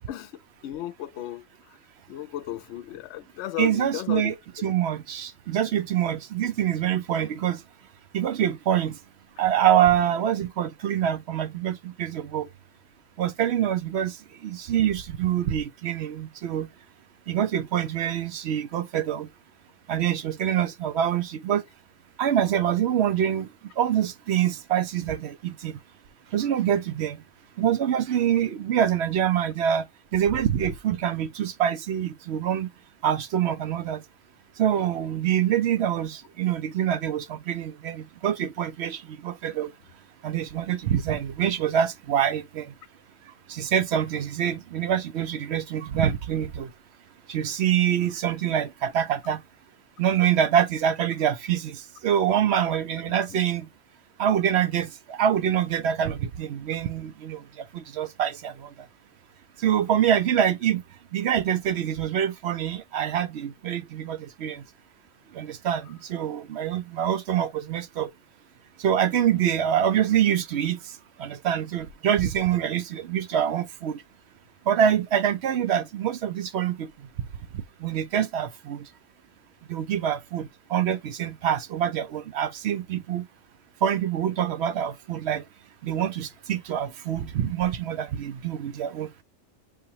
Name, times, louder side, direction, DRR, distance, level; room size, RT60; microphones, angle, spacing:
voice 1, 0.0-1.8 2.1-4.7 53.1-53.4, left 13 dB, 70° left, 0.8 m, -36 dB
voice 2, 3.6-4.4 4.6-7.6 8.1-9.0 9.4-12.5 13.2-14.2 14.4-16.7 17.3-19.3 19.9-21.6 22.2-23.5 23.8-25.8 26.3-27.2 27.6-29.8 30.1-32.7 33.0-34.0 34.6-39.7 40.2-42.7 43.5-46.7 47.3-49.4 50.0-53.7 54.2-57.4 57.7-58.7 59.6-60.8 61.1-64.6 65.3-68.1 68.8-70.8 71.2-74.0 74.7-76.9 77.8-78.8 79.7-83.2 83.8-85.4 85.8-89.1, right 9 dB, 65° right, 0.8 m, -25 dB
6.7 x 2.9 x 2.7 m
omnidirectional pair, 1.2 m